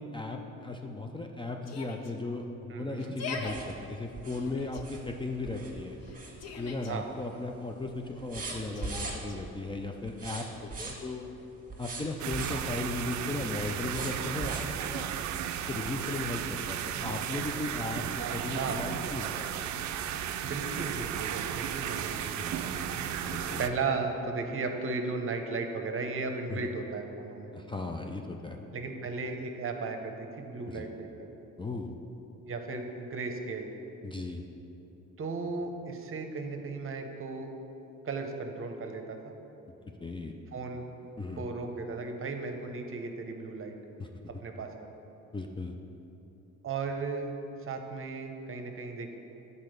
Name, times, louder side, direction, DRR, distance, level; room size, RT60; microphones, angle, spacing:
voice 1, 0.0-6.0 6.6-11.2 11.8-15.1 15.7-20.0 20.4-20.6 22.4-22.7 23.2-23.7 26.5-26.7 27.5-28.6 30.7-30.9 31.6-32.0 34.0-34.4 40.0-40.3 41.2-41.5 44.0-44.1 45.3-45.8, left 2 dB, 15° left, 3 dB, 0.4 m, -37 dB
Yell, 1.6-2.1 3.0-3.6 4.3-4.8 6.0-6.9 8.7-9.4, left 4 dB, 55° left, 0.8 m, -41 dB
voice 2, 2.7-3.1 6.9-7.1 18.5-18.9 20.4-23.0 23.6-27.5 28.7-31.3 32.4-33.7 35.2-37.5 38.0-39.3 40.5-40.9 41.4-43.7 44.4-44.9 46.6-47.3 47.6-49.2, right 4 dB, 45° right, 4 dB, 0.8 m, -35 dB
sound 1, 3.5-6.8 7.2-7.6 7.8-9.5 10.1-11.2 11.7-12.7 13.9-14.8 15.4-15.5 15.9-16.0, right 3 dB, 30° right, 1.4 m, -40 dB
sound 2, 12.2-23.7, right 9 dB, 70° right, 0.4 m, -34 dB
7.6 x 4.1 x 6.5 m, 2.9 s
cardioid pair, 90°, 30 cm